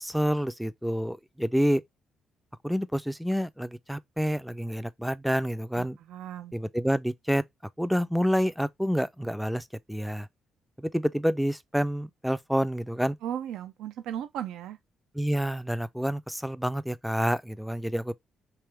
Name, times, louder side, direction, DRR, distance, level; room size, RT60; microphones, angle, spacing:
voice 1, 0.0-1.8 2.6-6.0 6.5-7.4 7.8-10.3 10.8-13.2 15.1-18.1, equal, ahead, 0.3 m, -28 dB
voice 2, 5.7-6.5 13.2-14.8, right 10 dB, 85° right, 0.3 m, -36 dB
3.4 x 2.9 x 3.2 m
cardioid pair, 90°, 0 cm